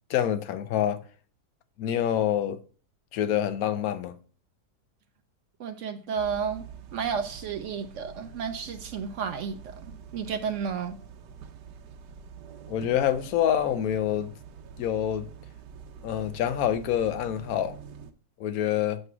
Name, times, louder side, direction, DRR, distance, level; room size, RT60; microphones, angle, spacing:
voice 1, 0.1-1.0 1.8-2.6 3.1-4.2 12.7-14.3 14.8-15.3 16.0-17.8 18.4-19.0, left 10 dB, 65° left, 1.1 m, -26 dB
voice 2, 5.6-6.7 6.9-9.6 10.1-11.0, right 6 dB, 70° right, 0.7 m, -32 dB
sound 1, 6.2-18.1, right 7 dB, 90° right, 1.3 m, -46 dB
7.7 x 3.1 x 5.9 m
omnidirectional pair, 1.8 m